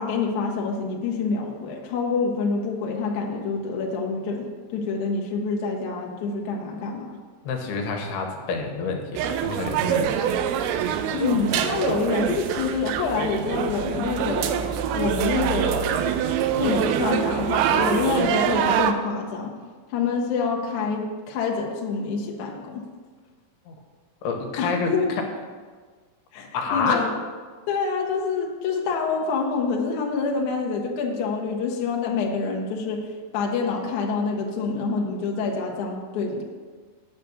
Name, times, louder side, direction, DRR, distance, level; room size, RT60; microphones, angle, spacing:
voice 1, 0.0-7.2 11.1-16.2 16.6-19.5 19.9-22.9 24.6-25.1 26.3-27.1 27.7-36.4, left 4 dB, 65° left, 0 dB, 2.1 m, -27 dB
voice 2, 7.4-10.2 23.7-23.8 24.2-24.9 26.5-27.1, left 4 dB, 85° left, 3 dB, 3.0 m, -28 dB
sound 1, 9.1-18.9, right 9 dB, 80° right, 2.4 m, -25 dB
9.0 x 5.9 x 6.7 m, 1.5 s
omnidirectional pair, 4.5 m